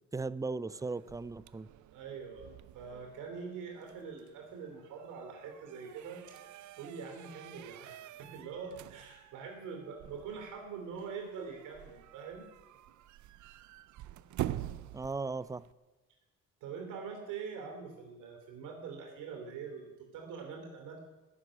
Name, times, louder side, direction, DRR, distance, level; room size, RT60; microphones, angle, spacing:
voice 1, 0.0-1.7 14.9-15.7, right 3 dB, 10° right, 18 dB, 0.5 m, -37 dB
sound 1, 0.7-15.7, right 14 dB, 70° right, 0.6 m, -47 dB
voice 2, 1.9-12.5 16.6-21.0, right 6 dB, 90° right, 3 dB, 3.1 m, -44 dB
14.5 x 7.3 x 10.0 m, 1.2 s
cardioid pair, 90°, 30 cm